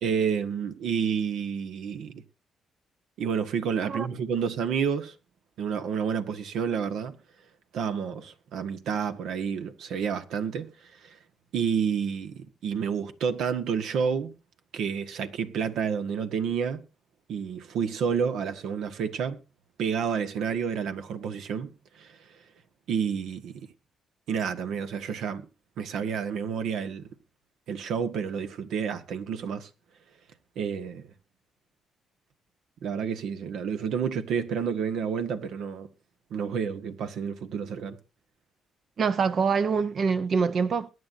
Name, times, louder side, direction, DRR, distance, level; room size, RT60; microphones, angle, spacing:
voice 1, 0.0-2.2 3.2-5.1 5.6-7.1 7.7-10.7 11.0-11.1 11.5-14.3 14.7-16.8 17.3-19.4 19.8-22.2 22.9-23.7 24.3-25.4 25.8-27.1 27.7-29.7 30.5-31.1 32.8-35.9 36.3-38.0, right 7 dB, 80° right, 1.4 m, -29 dB
voice 2, 39.0-40.9, right 5 dB, 50° right, 0.7 m, -25 dB
22.0 x 9.8 x 2.7 m
cardioid pair, 90°, 0 cm